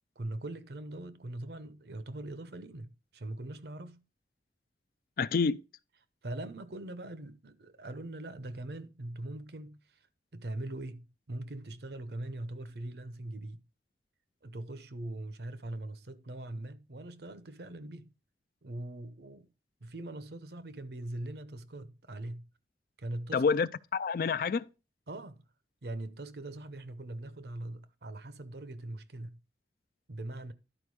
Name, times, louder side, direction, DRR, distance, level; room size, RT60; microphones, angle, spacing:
voice 1, 0.2-4.0 6.2-9.8 10.3-13.6 14.4-18.1 18.6-19.5 19.8-22.5 23.0-23.5 25.1-25.4 25.8-29.4 30.1-30.5, right 1 dB, 65° right, 0.7 m, -41 dB
voice 2, 5.2-5.6 23.3-24.7, left 5 dB, 55° left, 0.4 m, -28 dB
11.0 x 4.5 x 4.7 m
head